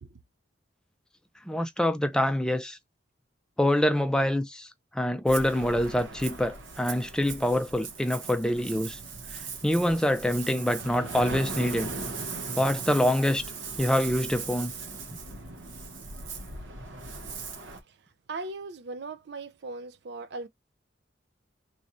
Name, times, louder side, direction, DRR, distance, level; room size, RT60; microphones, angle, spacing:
voice 1, 1.5-2.8 3.6-9.0 9.3-11.9 12.6-13.4 13.8-14.7, left 1 dB, 5° left, 0.4 m, -26 dB
Ocean, 5.3-17.8, right 4 dB, 75° right, 1.0 m, -38 dB
voice 2, 18.3-20.5, right 3 dB, 55° right, 0.4 m, -38 dB
3.1 x 2.6 x 4.1 m
head